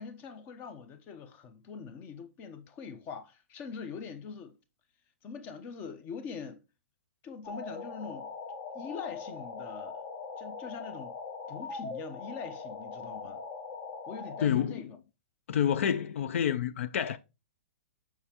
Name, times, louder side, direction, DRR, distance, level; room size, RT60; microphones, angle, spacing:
voice 1, 0.0-4.6 5.2-6.6 7.2-8.3 8.7-10.0 10.4-11.2 11.5-13.4 14.1-15.0, left 5 dB, 25° left, 0.7 m, -43 dB
sound 1, 7.4-14.5, left 4 dB, 40° left, 1.3 m, -41 dB
voice 2, 14.4-14.8 15.5-17.2, left 9 dB, 70° left, 0.4 m, -28 dB
6.5 x 5.7 x 2.9 m
hypercardioid pair, 155°, 7 cm